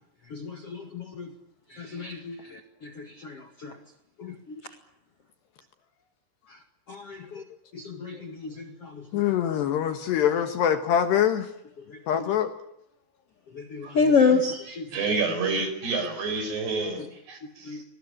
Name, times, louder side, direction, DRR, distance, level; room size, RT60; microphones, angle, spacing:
voice 1, 0.3-1.3 1.7-3.7 4.2-4.6 6.9-7.4 7.7-9.0 13.5-14.8 17.6-17.8, left 5 dB, 85° left, 6 dB, 1.3 m, -28 dB
voice 2, 9.1-11.5 12.1-12.5, left 9 dB, 65° left, 8 dB, 3.1 m, -24 dB
voice 3, 13.8-14.3 14.7-17.8, right 3 dB, 55° right, 8 dB, 7.0 m, -30 dB
24.5 x 20.0 x 9.9 m, 0.82 s
omnidirectional pair, 6.0 m